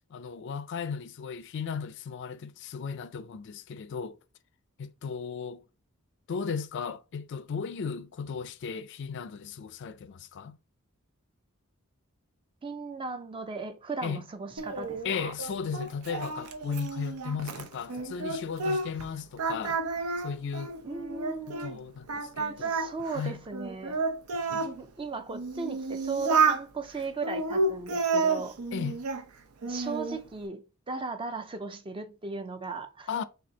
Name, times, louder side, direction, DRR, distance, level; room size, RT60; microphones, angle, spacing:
voice 1, 0.1-4.2 4.8-5.6 6.3-10.6 14.0-14.2 15.0-19.8 20.2-20.7 21.5-22.7 23.1-23.4 28.7-29.1 33.1-33.2, left 6 dB, 55° left, 0.4 m, -35 dB
voice 2, 12.6-15.3 20.8-21.8 22.6-24.0 24.5-28.6 29.7-33.1, right 4 dB, 25° right, 0.4 m, -37 dB
Singing, 14.6-19.1 19.4-21.7 22.1-24.7 25.3-26.6 27.2-29.2 29.6-30.2, right 4 dB, 90° right, 0.7 m, -30 dB
4.2 x 2.7 x 3.7 m
head